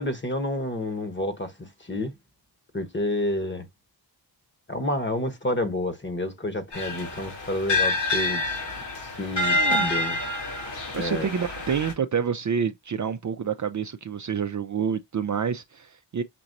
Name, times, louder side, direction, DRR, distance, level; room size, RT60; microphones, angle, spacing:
voice 1, 0.0-2.1 2.7-3.7 4.7-8.6 9.0-10.2 10.5-10.6 10.9-11.3, left 1 dB, 25° left, 1.1 m, -29 dB
sound 1, 6.7-11.9, left 2 dB, 70° left, 2.0 m, -27 dB
voice 2, 9.5-9.9 10.9-16.2, right 7 dB, 45° right, 0.5 m, -28 dB
6.0 x 2.9 x 2.6 m
cardioid pair, 60°, 44 cm